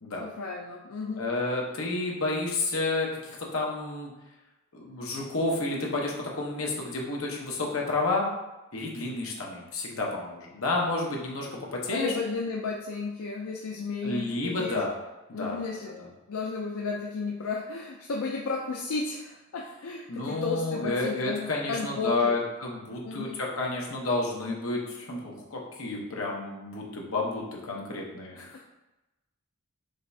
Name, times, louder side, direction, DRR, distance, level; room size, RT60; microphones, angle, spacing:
voice 1, 0.2-1.3 11.9-14.8 15.3-22.4 23.0-23.4, left 4 dB, 85° left, 0 dB, 0.5 m, -33 dB
voice 2, 1.2-4.1 4.7-8.3 8.7-12.1 14.0-15.0 15.3-15.6 20.1-28.6, left 2 dB, 70° left, -2 dB, 1.0 m, -30 dB
5.1 x 3.4 x 2.7 m, 1.0 s
head